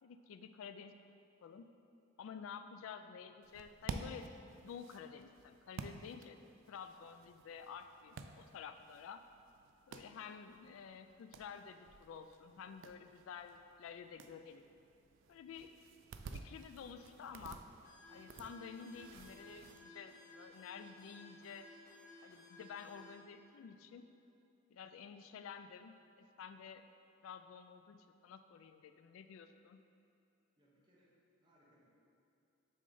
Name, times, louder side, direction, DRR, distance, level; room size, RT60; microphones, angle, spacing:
voice 1, 0.0-0.9 1.4-1.7 2.2-4.3 4.6-6.4 6.7-9.2 9.9-14.6 15.3-15.7 16.3-17.6 18.1-21.7 22.2-24.1 24.7-26.8 27.2-29.8, left 6 dB, 85° left, 10 dB, 0.3 m, -51 dB
sound 1, 3.4-19.8, right 4 dB, 65° right, 0.3 m, -52 dB
sound 2, 17.8-23.1, left 2 dB, 50° left, 1.5 m, -58 dB
voice 2, 30.6-31.9, equal, 25° right, -6 dB, 1.1 m, -71 dB
6.4 x 3.9 x 3.8 m, 2.7 s
head